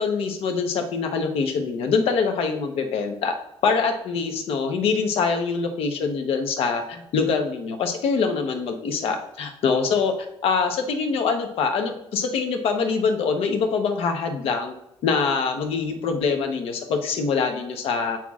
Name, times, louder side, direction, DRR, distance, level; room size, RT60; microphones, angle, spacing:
voice 1, 0.0-10.1 10.4-14.7 15.0-18.2, left 5 dB, 70° left, 5 dB, 0.8 m, -24 dB
7.4 x 5.7 x 2.4 m, 0.78 s
cardioid pair, 145°, 10 cm